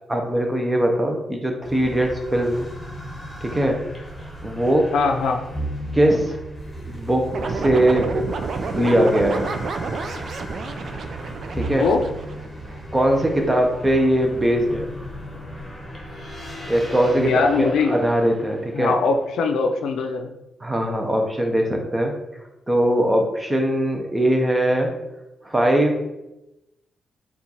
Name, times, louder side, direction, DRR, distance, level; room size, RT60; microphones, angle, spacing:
voice 1, 0.1-2.7 3.4-3.8 4.2-4.9 5.9-6.4 6.9-8.1 8.7-9.5 11.5-11.8 12.9-14.9 16.7-18.9 20.6-24.9 25.4-26.0, right 1 dB, 15° right, 2 dB, 0.7 m, -21 dB
sound 1, 1.6-19.6, equal, 15° left, 1.1 m, -36 dB
voice 2, 4.9-5.4 11.6-12.0 17.1-17.9 18.7-20.3, left 4 dB, 80° left, 5 dB, 0.5 m, -21 dB
sound 2, 7.3-12.8, right 4 dB, 55° right, 0.4 m, -30 dB
4.3 x 2.4 x 4.1 m, 0.94 s
cardioid pair, 105°, 0 cm